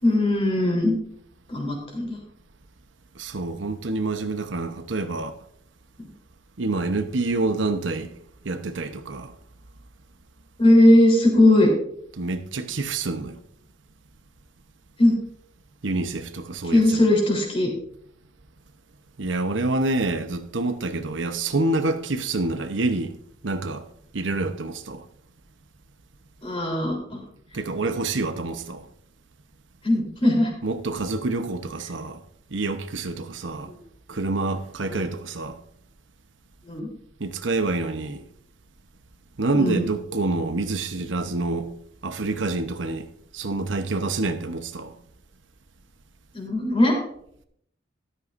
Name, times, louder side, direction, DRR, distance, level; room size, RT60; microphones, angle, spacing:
voice 1, 0.0-0.9 1.5-2.2 10.6-11.7 15.0-15.1 16.7-17.7 26.4-27.2 29.8-30.5 34.9-35.0 36.7-36.9 39.5-39.8 46.3-47.0, left 1 dB, 30° left, 3.6 m, -19 dB
voice 2, 3.1-5.4 6.6-8.1 8.4-9.3 12.2-13.4 15.8-17.0 19.2-23.2 23.4-23.9 24.1-25.1 27.5-28.9 30.6-32.2 32.5-33.7 34.1-35.6 37.2-38.2 39.4-41.7 42.0-44.9, right 2 dB, 85° right, 0.9 m, -27 dB
13.0 x 12.5 x 2.6 m
head